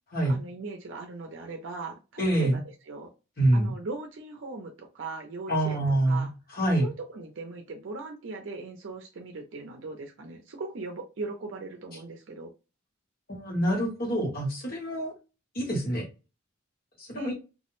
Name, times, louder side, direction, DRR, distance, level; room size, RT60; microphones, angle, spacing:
voice 1, 0.3-3.1 3.5-6.3 6.8-12.5 17.2-17.3, right 3 dB, 65° right, 2 dB, 0.5 m, -39 dB
voice 2, 2.2-2.5 3.4-3.7 5.5-6.3 6.5-6.9 13.3-15.1 15.5-16.0 17.0-17.3, right 1 dB, 45° left, 0 dB, 1.0 m, -26 dB
2.2 x 2.0 x 3.0 m, 0.31 s
head